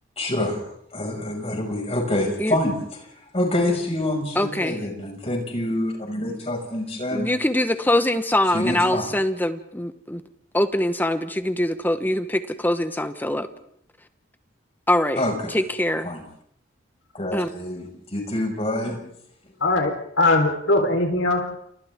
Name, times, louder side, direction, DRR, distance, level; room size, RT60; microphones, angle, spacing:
voice 1, 0.2-3.1 3.3-7.3 8.5-9.1 15.1-15.6 16.0-16.2 17.1-19.0, left 1 dB, 30° left, 1 dB, 6.1 m, -26 dB
voice 2, 4.4-4.8 7.1-10.2 10.5-13.5 14.9-15.2 15.5-16.1 17.3-17.5, left 1 dB, 10° left, 10 dB, 1.1 m, -23 dB
voice 3, 19.6-21.6, left 2 dB, 85° left, 2 dB, 4.2 m, -21 dB
29.5 x 29.0 x 3.7 m, 0.70 s
head